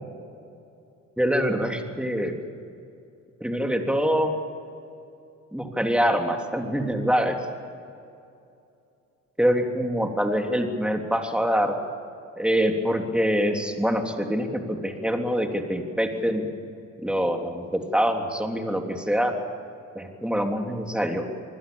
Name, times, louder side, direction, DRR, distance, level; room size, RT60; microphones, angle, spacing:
voice 1, 1.2-2.4 3.4-4.3 5.5-7.4 9.4-11.8 12.4-16.5 17.0-19.4 20.0-21.2, equal, 5° right, 3 dB, 3.4 m, -25 dB
27.0 x 20.0 x 7.2 m, 2.6 s
cardioid pair, 90°, 30 cm